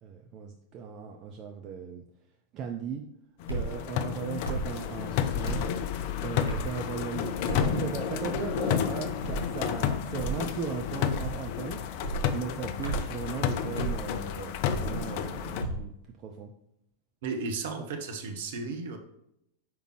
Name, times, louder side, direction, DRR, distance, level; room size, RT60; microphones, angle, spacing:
voice 1, 0.0-2.0 2.5-3.0 3.5-5.6 6.2-11.8 12.3-15.9 16.2-16.5, right 6 dB, 35° right, 3 dB, 0.5 m, -37 dB
sound 1, 3.4-15.6, left 9 dB, 45° left, 0.4 m, -31 dB
sound 2, 3.5-3.7 4.4-4.7 5.4-5.7 6.5-6.8 7.5-7.7 8.3-8.6 9.2-9.5 10.1-10.4 11.1-11.4 12.0-12.3 12.8-13.1 13.8-14.0 14.7-15.0 15.6-15.9, right 3 dB, 85° left, 2.1 m, -33 dB
voice 2, 17.2-19.0, right 4 dB, 55° right, 5 dB, 0.9 m, -34 dB
5.9 x 5.1 x 3.2 m, 0.79 s
figure-of-eight pair, 90°, 0 cm